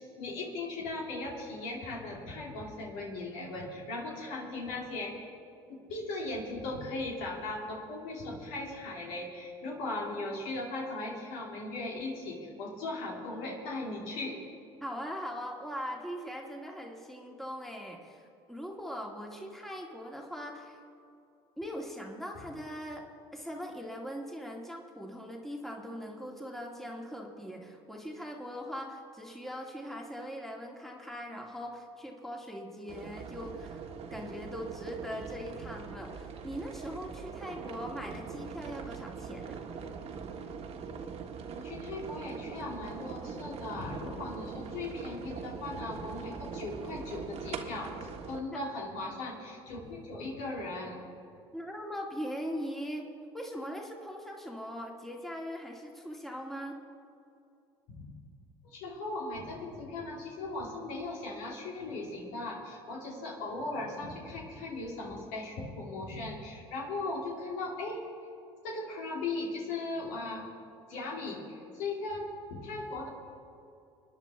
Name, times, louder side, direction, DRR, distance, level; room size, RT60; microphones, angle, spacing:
voice 1, 0.0-5.1 5.7-14.4 41.6-51.0 57.9-58.1 58.6-68.0 68.6-70.5 70.9-73.1, left 2 dB, 70° left, -2 dB, 2.7 m, -38 dB
voice 2, 14.8-20.8 21.6-39.6 48.5-48.6 51.5-53.1 53.3-56.8, equal, ahead, 0 dB, 2.1 m, -41 dB
sound 1, 32.9-48.4, right 6 dB, 50° right, 1.5 m, -42 dB
25.5 x 10.0 x 3.5 m, 2.6 s
hypercardioid pair, 75°, 14 cm